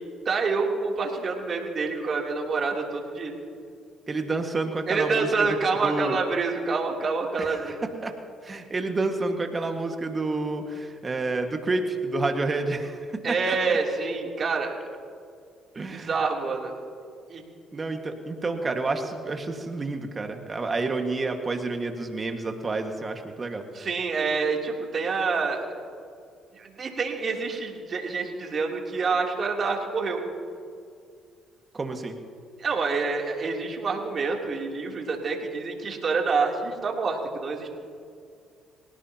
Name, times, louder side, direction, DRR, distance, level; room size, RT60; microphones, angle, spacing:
voice 1, 0.2-3.3 4.9-7.8 13.2-14.7 15.9-16.7 17.3-17.4 23.7-25.6 26.5-30.2 32.6-37.7, right 4 dB, 50° right, 0 dB, 3.3 m, -27 dB
voice 2, 4.1-5.5 5.8-6.2 7.4-8.1 8.4-13.2 13.5-13.8 15.8-16.1 17.7-23.6 31.7-32.2, right 3 dB, 35° right, 4 dB, 1.9 m, -29 dB
26.0 x 17.5 x 3.0 m, 2.3 s
supercardioid pair, 70°, 0 cm